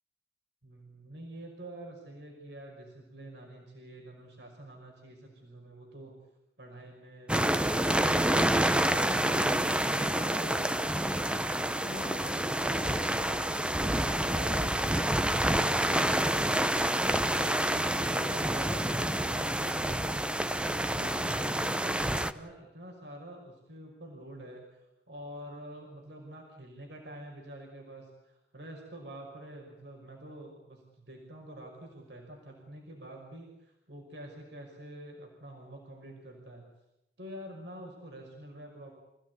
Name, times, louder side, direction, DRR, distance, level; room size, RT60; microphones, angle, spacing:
voice 1, 0.6-6.1 6.6-11.3 11.7-20.1 20.6-36.7 37.2-38.9, right 1 dB, 70° right, 0 dB, 5.8 m, -47 dB
sound 1, 7.3-22.3, right 1 dB, 5° right, 0.8 m, -28 dB
28.0 x 17.0 x 9.7 m, 0.89 s
head